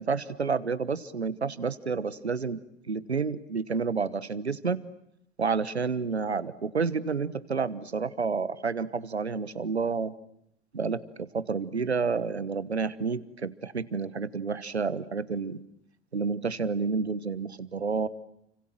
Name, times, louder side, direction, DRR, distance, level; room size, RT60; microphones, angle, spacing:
voice 1, 0.0-2.6 2.9-4.8 5.4-10.1 10.7-15.6 16.1-18.1, right 5 dB, 80° right, 17 dB, 1.3 m, -30 dB
30.0 x 25.5 x 7.7 m, 0.76 s
figure-of-eight pair, 80°, 32 cm